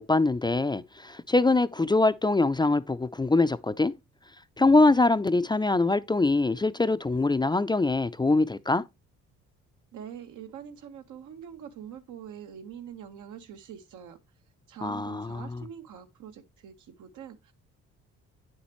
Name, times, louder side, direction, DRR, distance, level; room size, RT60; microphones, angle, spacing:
voice 1, 0.0-3.9 4.6-8.8 14.8-15.6, left 2 dB, 15° left, 0.5 m, -23 dB
voice 2, 9.9-14.2 14.7-17.5, right 8 dB, 80° right, 1.5 m, -44 dB
8.9 x 7.2 x 3.1 m
cardioid pair, 90°, 30 cm